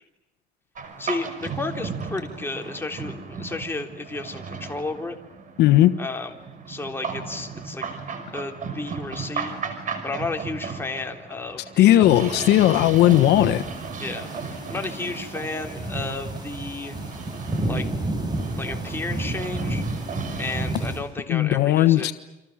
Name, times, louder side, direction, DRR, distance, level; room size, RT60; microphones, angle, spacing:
sound 1, 0.7-20.7, right 5 dB, 50° right, 5.6 m, -35 dB
voice 1, 1.0-5.2 6.0-6.4 6.7-7.9 8.3-9.6 10.0-12.1 14.0-17.0 17.6-17.9 18.6-19.9 20.4-22.1, left 3 dB, 15° left, 3 dB, 3.5 m, -33 dB
voice 2, 5.6-5.9 11.8-13.6 21.3-22.1, left 14 dB, 80° left, 11 dB, 1.3 m, -17 dB
sound 2, 12.1-21.0, right 1 dB, 25° right, 8.0 m, -31 dB
29.5 x 26.0 x 7.4 m, 0.94 s
cardioid pair, 110°, 17 cm